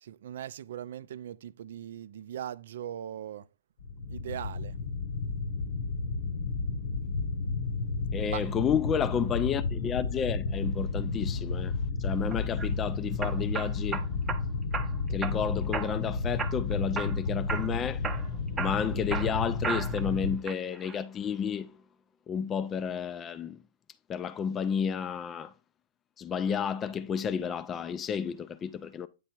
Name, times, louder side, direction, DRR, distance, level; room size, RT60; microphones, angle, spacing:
voice 1, 0.0-3.5 4.1-4.8 8.3-8.5, right 10 dB, 65° right, 0.4 m, -39 dB
sound 1, 3.8-20.4, left 4 dB, 70° left, 1.0 m, -32 dB
voice 2, 8.1-11.7 12.0-14.1 15.1-18.1 18.6-21.8 22.3-23.6 24.1-25.5 26.2-29.1, left 7 dB, 20° left, 0.4 m, -31 dB
sound 2, 12.3-12.7 13.2-14.4 14.7-15.4 15.7-16.1 16.4-17.2 17.5-17.7 18.0-20.1 20.5-21.0, right 5 dB, 15° right, 0.7 m, -34 dB
8.9 x 3.4 x 4.4 m
hypercardioid pair, 135°, 0 cm